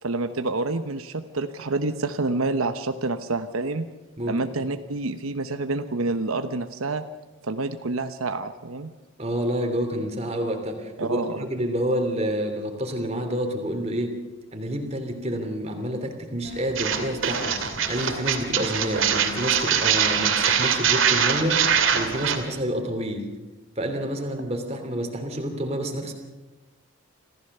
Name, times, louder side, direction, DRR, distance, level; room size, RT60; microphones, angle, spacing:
voice 1, 0.0-3.9 4.3-7.0 7.4-8.9 11.0-11.5, right 3 dB, 85° right, 9 dB, 1.0 m, -28 dB
voice 2, 9.2-14.2 14.5-21.7 21.9-23.2 23.8-26.1, equal, 30° right, 4 dB, 3.0 m, -28 dB
sound 1, 16.4-22.5, left 1 dB, 35° left, 3.4 m, -43 dB
sound 2, 16.8-22.4, right 7 dB, 70° right, 2.6 m, -23 dB
25.5 x 15.5 x 6.7 m, 1.1 s
head